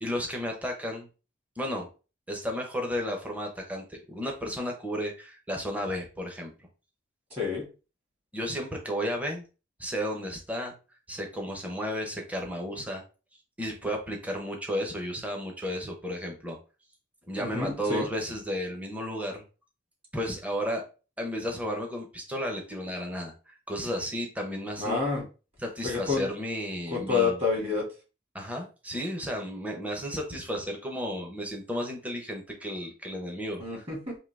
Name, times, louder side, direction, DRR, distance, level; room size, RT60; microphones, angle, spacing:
voice 1, 0.0-1.1 1.6-1.9 2.3-6.5 8.3-9.4 9.8-10.7 11.1-13.0 13.6-16.6 17.3-19.4 20.1-20.8 21.2-25.0 25.6-27.3 28.3-33.8, equal, 10° right, 1 dB, 0.8 m, -33 dB
voice 2, 7.3-7.6 17.4-18.1 24.8-25.2 25.8-26.3 26.9-27.9 33.6-34.2, left 4 dB, 30° right, -2 dB, 1.9 m, -28 dB
3.8 x 2.8 x 3.3 m, 0.33 s
head